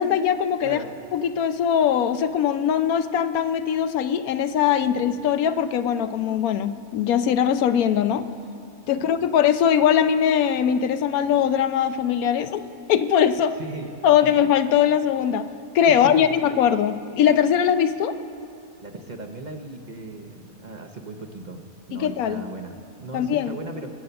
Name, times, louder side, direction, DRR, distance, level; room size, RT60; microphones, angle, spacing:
voice 1, 0.0-0.8 1.1-8.3 8.9-12.6 12.9-13.5 14.0-15.5 15.7-18.2 21.9-22.4 23.1-23.6, left 9 dB, 85° left, 11 dB, 1.1 m, -21 dB
voice 2, 0.6-0.9 4.8-5.0 8.8-9.1 13.6-13.9 14.2-14.4 15.9-16.3 18.8-21.6 21.9-23.9, right 2 dB, 40° right, 3 dB, 0.8 m, -37 dB
20.5 x 7.8 x 6.9 m, 2.6 s
omnidirectional pair, 1.5 m